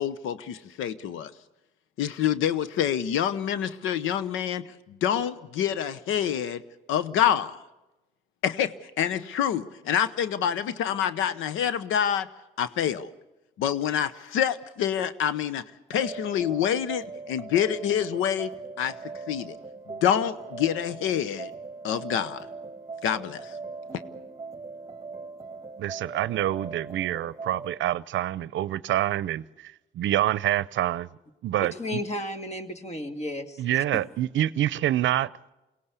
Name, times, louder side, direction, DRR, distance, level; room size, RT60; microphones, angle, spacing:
voice 1, 0.0-1.3 2.0-6.6 6.9-7.6 8.4-12.3 12.6-13.1 13.6-15.6 15.9-18.5 18.8-18.9 19.3-19.6 19.9-21.5 21.8-22.5 23.0-23.6, left 9 dB, 90° left, 0.9 m, -27 dB
sound 1, 15.9-27.8, right 4 dB, 15° right, 1.4 m, -40 dB
voice 2, 25.8-31.1 31.4-32.0 33.6-35.5, right 13 dB, 70° right, 0.7 m, -27 dB
voice 3, 31.6-33.6 33.9-34.0, left 1 dB, 35° left, 2.2 m, -33 dB
23.0 x 17.5 x 8.3 m
cardioid pair, 90°, 20 cm